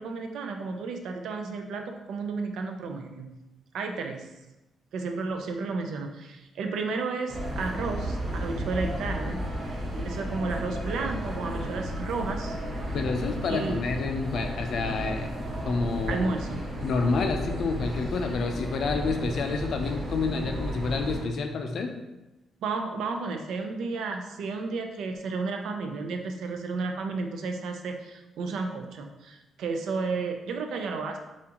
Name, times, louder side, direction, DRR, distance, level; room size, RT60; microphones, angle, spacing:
voice 1, 0.0-3.3 3.7-4.2 4.9-9.4 10.0-12.6 13.5-13.8 16.1-16.6 22.6-31.2, right 4 dB, 70° right, 4 dB, 0.5 m, -32 dB
sound 1, 7.3-21.2, equal, 35° right, 1.3 m, -33 dB
voice 2, 12.9-15.3 15.6-16.3 16.8-21.9, left 4 dB, 50° left, 5 dB, 0.5 m, -29 dB
7.2 x 2.5 x 2.9 m, 1.0 s
cardioid pair, 180°, 0 cm